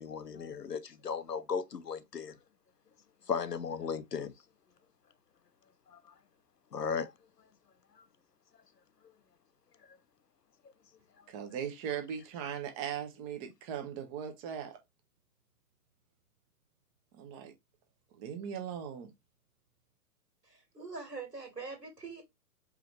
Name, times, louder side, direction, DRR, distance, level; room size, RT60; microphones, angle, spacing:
voice 1, 0.0-2.4 3.3-4.3 5.9-6.0 6.7-7.1, left 6 dB, 85° left, 0.8 m, -36 dB
voice 2, 11.3-14.7 17.2-17.5 18.2-19.1, right 8 dB, 20° right, 0.8 m, -39 dB
voice 3, 20.4-22.2, right 4 dB, 85° right, 2.2 m, -43 dB
4.8 x 3.2 x 3.2 m
figure-of-eight pair, 115°, 47 cm